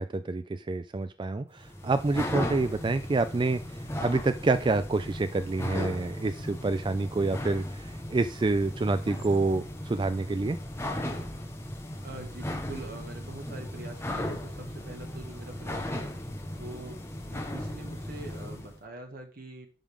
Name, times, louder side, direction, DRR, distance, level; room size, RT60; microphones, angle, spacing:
voice 1, 0.0-10.6, right 3 dB, 25° right, 12 dB, 0.3 m, -28 dB
sound 1, 1.6-18.8, left 1 dB, 15° left, 1.2 m, -37 dB
voice 2, 12.0-16.2 16.6-19.7, right 2 dB, 50° right, 3 dB, 1.6 m, -44 dB
12.0 x 5.2 x 3.6 m, 0.38 s
head